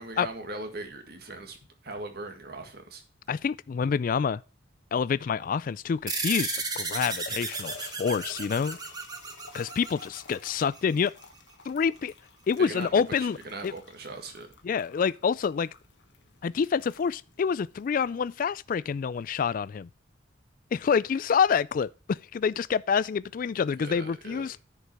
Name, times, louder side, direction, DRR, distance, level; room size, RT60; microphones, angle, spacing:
voice 1, 0.0-1.6 1.8-3.0 12.6-14.5 23.8-24.5, right 2 dB, 55° right, 1.8 m, -39 dB
voice 2, 3.3-4.4 4.9-8.8 9.5-11.1 11.7-12.1 12.5-13.4 13.6-13.7 14.6-15.7 16.4-19.9 20.7-24.6, left 6 dB, 45° left, 0.3 m, -27 dB
sound 1, 5.4-18.4, left 4 dB, 65° left, 1.3 m, -53 dB
sound 2, 6.1-10.9, right 3 dB, 20° right, 1.3 m, -34 dB
10.0 x 5.3 x 4.6 m
head